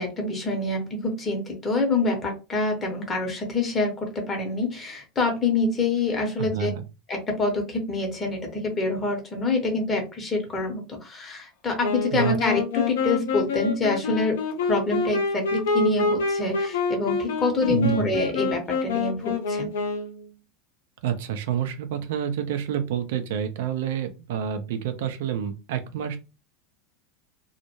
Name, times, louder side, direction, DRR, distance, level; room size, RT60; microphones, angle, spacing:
voice 1, 0.0-6.7 7.1-14.4 14.7-19.7, left 3 dB, 25° left, 3 dB, 0.8 m, -26 dB
voice 2, 6.4-6.8 12.1-12.4 17.6-18.1 21.0-26.2, right 9 dB, 65° right, 8 dB, 0.5 m, -28 dB
Wind instrument woodwind instrument, 11.8-20.2, left 4 dB, 65° left, 0.5 m, -27 dB
2.1 x 2.1 x 3.0 m, 0.29 s
figure-of-eight pair, 80°, 0 cm